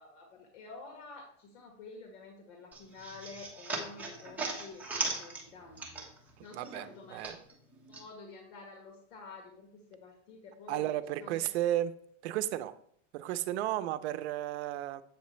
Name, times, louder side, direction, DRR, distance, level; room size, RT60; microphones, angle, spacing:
voice 1, 0.0-6.0 6.4-7.3 7.9-10.9 11.2-11.5, left 4 dB, 75° left, 2 dB, 1.7 m, -50 dB
sound 1, 2.7-6.4 6.6-8.0, right 3 dB, 5° right, 1.1 m, -38 dB
voice 2, 6.4-7.4 10.7-11.9 12.2-12.7 13.1-15.0, right 13 dB, 60° right, 12 dB, 0.7 m, -33 dB
8.4 x 6.8 x 3.2 m, 0.65 s
supercardioid pair, 160°, 36 cm